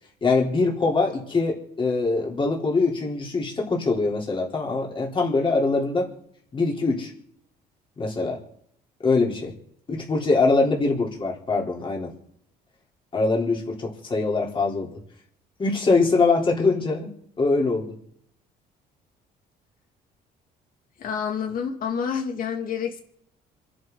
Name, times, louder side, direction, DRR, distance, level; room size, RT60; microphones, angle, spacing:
voice 1, 0.2-6.1 6.5-7.1 8.0-8.4 9.0-9.5 9.9-12.1 13.1-14.9 15.6-17.1 17.4-17.9, left 3 dB, 30° left, -2 dB, 4.4 m, -23 dB
voice 2, 21.0-23.0, left 7 dB, 55° left, 3 dB, 3.0 m, -28 dB
27.0 x 11.0 x 4.2 m, 0.70 s
cardioid pair, 110°, 17 cm